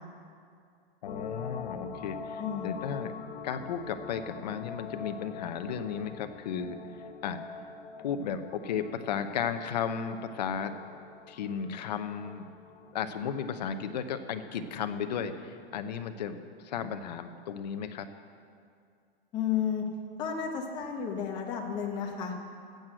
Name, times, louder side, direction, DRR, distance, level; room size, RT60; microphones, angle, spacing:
voice 1, 1.0-3.1 3.4-7.4 8.0-11.0 11.3-12.4 12.9-16.4 16.6-18.1, left 7 dB, 45° left, 8 dB, 0.8 m, -34 dB
sound 1, 1.1-16.8 17.1-17.2, left 5 dB, 65° left, 1.4 m, -45 dB
voice 2, 2.4-2.8 19.3-19.8 20.2-22.3, left 7 dB, 15° left, 1 dB, 1.0 m, -32 dB
13.5 x 7.8 x 7.6 m, 2.3 s
hypercardioid pair, 170°, 30 cm